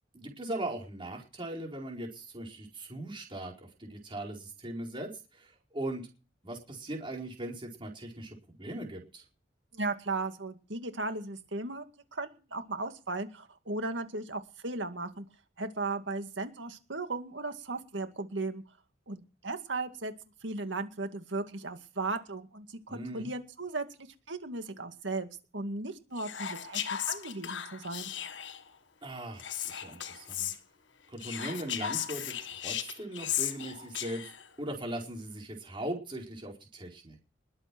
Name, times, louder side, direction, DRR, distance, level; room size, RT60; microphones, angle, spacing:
voice 1, 0.1-6.1 6.4-9.2 22.9-23.3 29.0-30.5 31.1-32.3 32.6-34.3 34.6-37.2, right 1 dB, 30° right, 0 dB, 4.5 m, -39 dB
voice 2, 9.7-11.9 12.1-15.2 15.6-18.6 19.1-20.1 20.4-23.9 24.3-25.3 25.5-28.1, right 3 dB, 85° right, 7 dB, 2.1 m, -36 dB
Whispering, 26.2-28.7 29.4-30.6 31.2-34.5, left 10 dB, 90° left, 1.5 m, -36 dB
21.0 x 7.9 x 6.1 m, 0.35 s
head